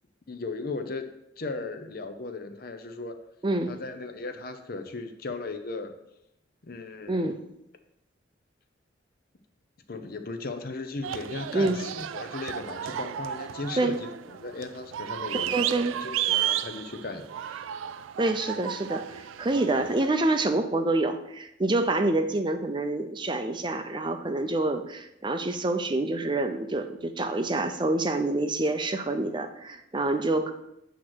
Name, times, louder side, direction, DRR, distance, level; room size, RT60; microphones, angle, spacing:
voice 1, 0.3-1.0 1.4-3.2 3.7-5.9 6.6-7.3 9.9-13.9 14.3-17.6, left 3 dB, 50° left, 7 dB, 0.7 m, -36 dB
voice 2, 3.4-3.7 7.1-7.4 11.5-11.8 13.8-14.0 15.5-15.9 18.2-30.5, right 2 dB, 25° right, 7 dB, 0.5 m, -27 dB
sound 1, 11.0-20.1, right 11 dB, 85° right, 0.3 m, -33 dB
8.4 x 3.1 x 6.1 m, 0.83 s
head